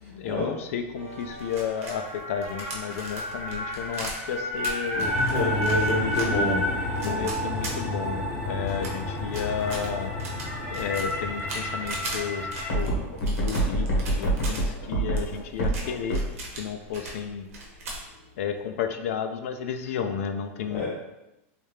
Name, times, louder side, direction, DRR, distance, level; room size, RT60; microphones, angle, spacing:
voice 1, 0.0-5.1 7.0-10.2 10.7-12.5 12.7-16.2 16.5-17.5 18.4-20.8, left 7 dB, 70° left, 7 dB, 0.4 m, -32 dB
sound 1, 1.0-16.3, equal, 90° left, 1.2 m, -30 dB
sound 2, 1.2-8.3 8.7-14.6 15.1-17.2 17.5-18.1, right 2 dB, 75° right, 1.0 m, -39 dB
voice 2, 5.0-6.7 20.7-20.9, left 2 dB, 25° left, -5 dB, 0.8 m, -27 dB
sound 3, 5.0-14.6, left 1 dB, 10° right, 0.7 m, -33 dB
3.4 x 2.7 x 3.2 m, 0.95 s
supercardioid pair, 175°, 8 cm